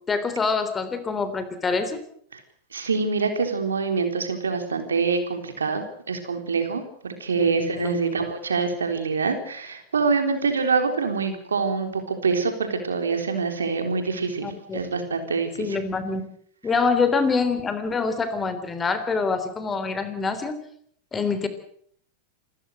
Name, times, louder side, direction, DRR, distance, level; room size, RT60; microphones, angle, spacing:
voice 1, 0.1-2.0 7.4-8.2 14.4-14.8 15.6-16.2 16.6-20.6 21.1-21.5, left 4 dB, 20° left, 11 dB, 3.5 m, -25 dB
voice 2, 2.7-15.8, right 4 dB, 80° right, 6 dB, 3.8 m, -25 dB
27.0 x 14.5 x 7.8 m, 0.63 s
hypercardioid pair, 95°, 0 cm